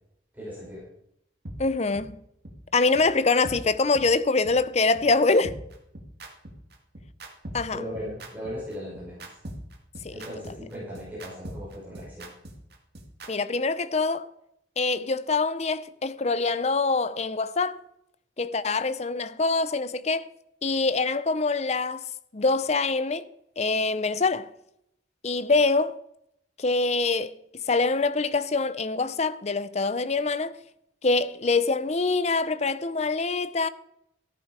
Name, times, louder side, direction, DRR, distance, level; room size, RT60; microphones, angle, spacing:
voice 1, 0.3-0.9 7.7-9.4 10.1-12.3, equal, 10° right, 5.6 m, -38 dB
sound 1, 1.5-1.6 1.9-2.1 2.4-2.5 3.0-3.1 3.4-3.6 3.9-4.1 4.4-4.5 5.0-5.1 5.4-13.3, right 1 dB, 55° right, 2.2 m, -41 dB
voice 2, 1.6-2.2 2.7-5.6 7.5-7.8 10.0-10.1 13.3-14.3 14.8-17.8 18.4-20.3 20.6-22.0 22.3-23.2 23.6-24.5 25.2-26.0 26.6-27.3 27.7-30.6 31.0-33.7, left 3 dB, 35° left, 0.6 m, -24 dB
14.0 x 10.5 x 4.8 m
head